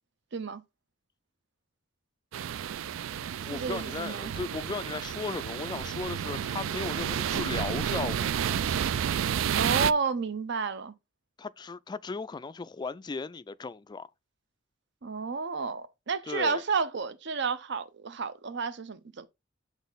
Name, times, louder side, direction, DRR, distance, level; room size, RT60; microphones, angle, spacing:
voice 1, 0.3-0.6 3.5-4.3 9.5-10.9 15.0-19.3, right 5 dB, 60° right, 0.7 m, -31 dB
sound 1, 2.3-9.9, right 9 dB, 85° right, 0.3 m, -31 dB
voice 2, 3.5-8.3 11.4-14.1 16.2-16.6, left 4 dB, 20° left, 0.3 m, -36 dB
7.1 x 4.1 x 3.9 m
head